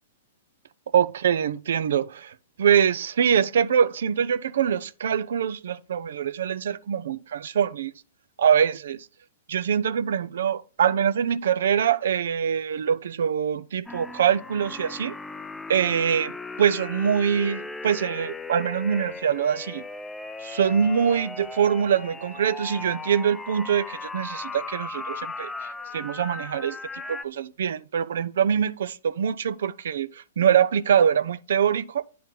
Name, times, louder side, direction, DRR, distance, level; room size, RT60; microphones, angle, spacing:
voice 1, 0.9-8.0 8.4-9.0 9.5-15.1 15.7-16.3 16.6-19.8 20.4-25.5 25.9-30.1 30.4-32.0, right 8 dB, 70° right, 0.5 m, -24 dB
sound 1, 13.9-27.2, left 3 dB, 10° left, 0.4 m, -37 dB
9.2 x 4.2 x 3.8 m
hypercardioid pair, 115°, 0 cm